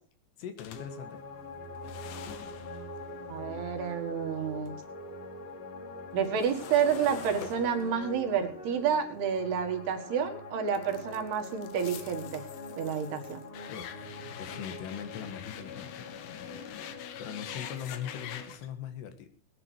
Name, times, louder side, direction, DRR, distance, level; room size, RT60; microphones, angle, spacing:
voice 1, 0.4-1.2 13.7-14.1 14.4-16.0 17.2-19.3, left 9 dB, 90° left, 8 dB, 3.8 m, -40 dB
sound 1, 0.6-4.8 5.2-10.1 10.7-18.7, left 10 dB, 70° left, 2.5 m, -46 dB
sound 2, 0.7-18.5, left 2 dB, 40° left, 4.3 m, -44 dB
voice 2, 3.3-4.8 6.1-12.4 12.8-13.4, right 7 dB, 75° right, 3 dB, 3.7 m, -30 dB
20.0 x 10.0 x 4.7 m, 0.39 s
omnidirectional pair, 4.7 m